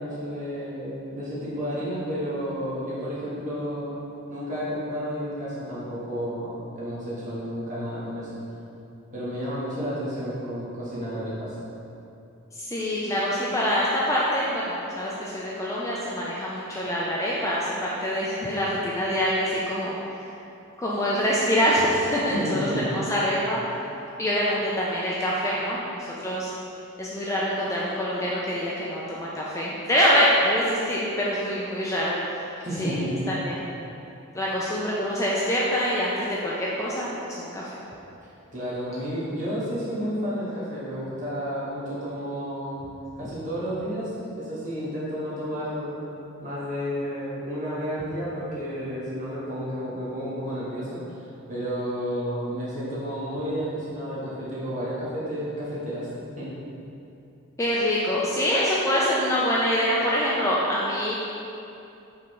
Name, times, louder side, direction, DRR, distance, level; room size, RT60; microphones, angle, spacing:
voice 1, 0.0-4.0 4.3-8.4 9.1-11.5 22.3-22.9 32.6-33.2 38.2-42.8 43.2-44.1 44.4-46.1 46.4-51.2 51.5-56.1 56.4-56.5, equal, 35° right, -9 dB, 1.2 m, -31 dB
voice 2, 12.6-20.3 20.8-22.6 22.8-23.6 24.2-26.5 27.0-32.2 32.8-33.0 33.3-33.6 34.3-37.8 57.6-61.1, equal, 15° left, -6 dB, 0.3 m, -25 dB
4.8 x 3.5 x 3.1 m, 2.7 s
head